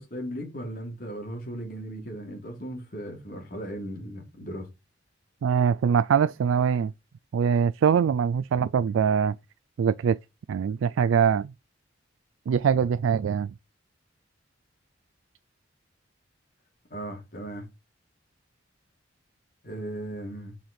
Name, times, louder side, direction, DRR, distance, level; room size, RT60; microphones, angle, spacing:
voice 1, 0.0-4.7 16.9-17.7 19.6-20.6, right 1 dB, 50° left, 3.0 m, -37 dB
voice 2, 5.4-6.9 7.3-9.4 9.8-10.2 10.5-11.5 12.5-13.5, right 7 dB, 90° right, 0.3 m, -23 dB
5.7 x 5.3 x 5.1 m
head